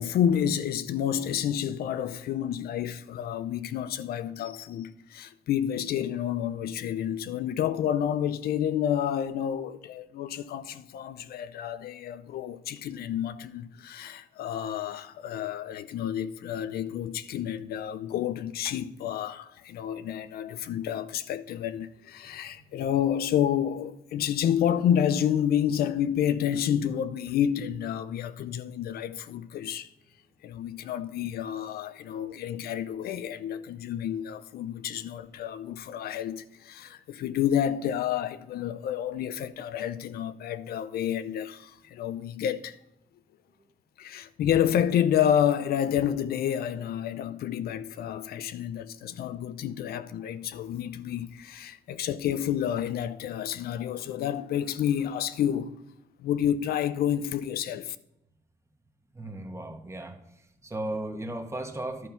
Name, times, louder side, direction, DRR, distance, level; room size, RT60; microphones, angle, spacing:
voice 1, 0.0-29.9 30.4-42.8 44.0-55.8 56.2-58.0, left 9 dB, 85° left, 0.6 m, -29 dB
voice 2, 32.0-32.4 35.0-35.1 59.1-60.2 60.6-62.1, right 1 dB, 20° right, 1.3 m, -36 dB
11.0 x 5.5 x 5.8 m
cardioid pair, 90°, 16 cm